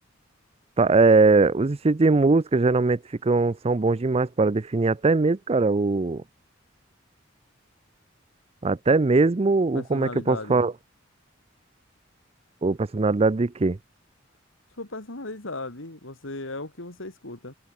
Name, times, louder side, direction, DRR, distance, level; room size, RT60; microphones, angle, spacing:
voice 1, 0.8-6.2 8.6-10.7 12.6-13.8, right 3 dB, 30° right, 0.5 m, -21 dB
voice 2, 9.7-10.6 14.8-17.5, left 2 dB, 75° left, 3.1 m, -36 dB
head